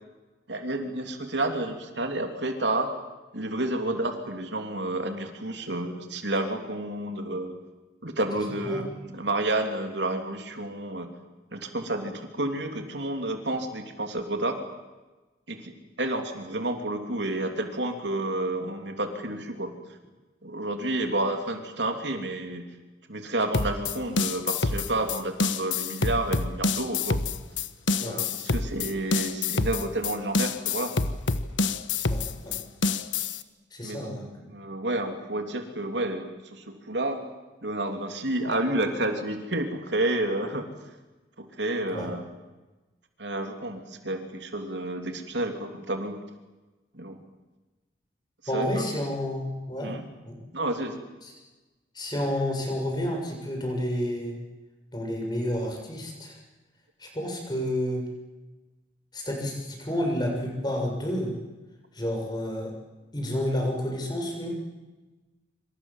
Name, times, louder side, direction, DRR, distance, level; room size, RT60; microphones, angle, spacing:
voice 1, 0.5-2.9 3.3-7.5 8.0-11.1 11.5-14.6 15.5-15.7 16.0-19.7 20.4-22.7 23.1-27.2 28.0-30.9 33.8-34.2 34.5-37.2 37.6-40.7 41.4-42.2 43.2-46.2 46.9-47.2 48.5-48.9 49.8-50.1 50.5-51.0, right 1 dB, 70° right, 5 dB, 3.2 m, -30 dB
sound 1, 23.5-33.4, left 3 dB, 85° left, 1.4 m, -27 dB
voice 2, 32.1-32.5 33.7-34.5 41.9-42.1 48.5-49.9 50.2-50.4 51.2-51.3 51.9-54.3 54.9-56.4 57.0-58.1 59.1-61.3 61.9-62.7 63.1-64.5, left 1 dB, 20° left, 1 dB, 6.9 m, -30 dB
26.5 x 26.5 x 7.5 m, 1.2 s
head